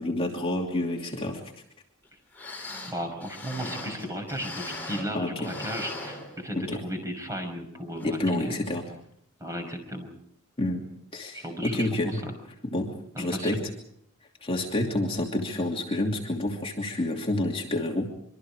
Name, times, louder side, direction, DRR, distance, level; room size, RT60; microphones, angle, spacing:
voice 1, 0.0-1.4 5.1-5.5 6.5-6.8 8.0-8.8 10.6-10.8 11.1-12.2 12.7-13.6 14.4-18.1, left 1 dB, 25° left, 0 dB, 2.8 m, -28 dB
sound 1, 2.0-2.1 2.3-5.2 5.4-6.8 7.2-7.3 8.0-8.2 8.6-8.7, left 2 dB, 10° left, 7.1 m, -39 dB
voice 2, 2.9-8.6 9.4-10.1 11.3-12.3 13.1-13.6, equal, 15° right, 5 dB, 5.7 m, -35 dB
26.0 x 25.0 x 5.0 m, 0.71 s
head